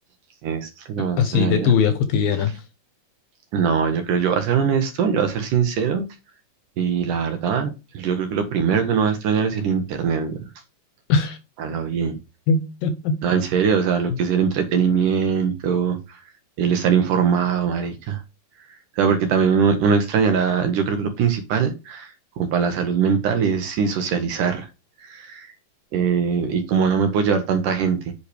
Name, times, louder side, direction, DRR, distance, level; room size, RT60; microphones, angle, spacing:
voice 1, 0.4-1.7 3.5-6.1 6.8-10.4 11.6-12.2 13.2-16.2 16.6-18.2 18.7-24.7 25.0-25.5 25.9-28.1, right 6 dB, 65° right, 2.3 m, -22 dB
voice 2, 1.0-2.5 11.1-11.4 12.5-13.2, left 6 dB, 70° left, 2.5 m, -20 dB
8.3 x 5.5 x 3.3 m
omnidirectional pair, 4.5 m